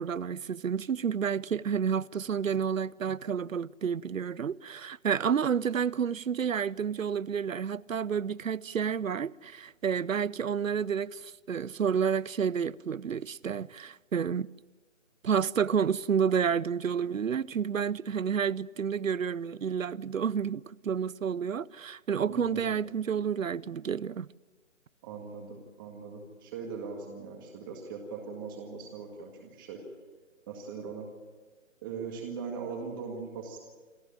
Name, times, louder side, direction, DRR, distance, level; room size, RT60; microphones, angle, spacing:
voice 1, 0.0-14.5 15.2-24.3, right 7 dB, 80° right, 0.7 m, -30 dB
voice 2, 22.3-22.7 25.0-29.8 30.5-31.1 31.8-33.6, right 5 dB, 15° right, 1.9 m, -40 dB
27.0 x 13.5 x 8.9 m
figure-of-eight pair, 160°, 39 cm